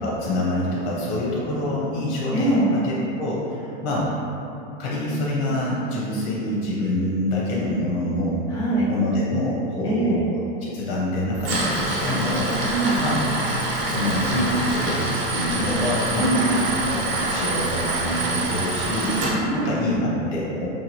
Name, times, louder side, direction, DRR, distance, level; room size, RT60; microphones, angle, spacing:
voice 1, 0.0-4.1 4.8-8.4 8.8-10.3 10.6-12.5 13.0-13.2 13.8-16.5 16.8-19.2 19.5-20.7, left 1 dB, 90° left, -6 dB, 0.7 m, -26 dB
voice 2, 2.3-2.7 8.5-8.9 9.8-10.2 12.6-13.0 16.1-16.6 19.2-19.7, right 2 dB, 10° left, -8 dB, 0.4 m, -23 dB
Tools, 11.3-19.3, right 2 dB, 35° right, 0.6 m, -25 dB
3.2 x 2.2 x 2.7 m, 2.9 s
supercardioid pair, 155°, 33 cm